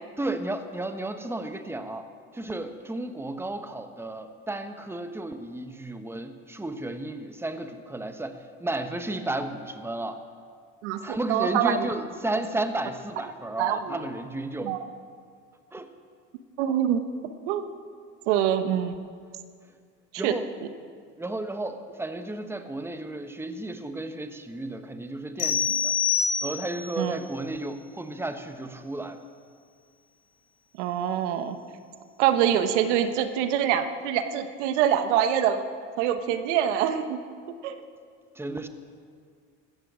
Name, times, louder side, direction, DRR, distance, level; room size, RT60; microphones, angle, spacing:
voice 1, 0.2-2.1 2.3-10.2 11.0-14.7 15.7-15.9 20.2-20.5 21.2-25.9 26.4-29.2 38.3-38.7, right 2 dB, 5° right, 8 dB, 1.2 m, -33 dB
voice 2, 10.8-11.9 13.6-14.0 14.6-14.8 16.6-17.7 18.3-18.9 20.2-20.3 27.0-27.1 30.8-31.6 32.2-35.6 36.0-37.2 37.6-37.8, right 10 dB, 80° right, 9 dB, 1.2 m, -25 dB
sound 1, 25.4-27.0, left 6 dB, 65° left, 4.2 m, -26 dB
16.5 x 13.5 x 6.3 m, 2.1 s
supercardioid pair, 85°, 35 cm